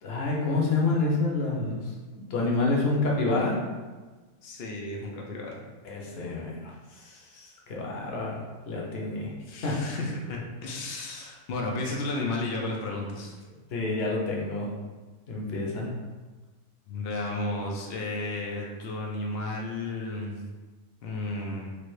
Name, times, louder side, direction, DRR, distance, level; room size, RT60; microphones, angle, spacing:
voice 1, 0.0-3.6 5.8-9.3 9.6-9.8 13.7-14.7 15.3-15.9, left 3 dB, 55° left, -3 dB, 0.8 m, -28 dB
voice 2, 4.4-5.6 9.5-13.3 16.9-20.4 21.0-21.7, left 2 dB, 85° left, -1 dB, 0.5 m, -33 dB
3.2 x 2.5 x 3.1 m, 1.3 s
omnidirectional pair, 1.6 m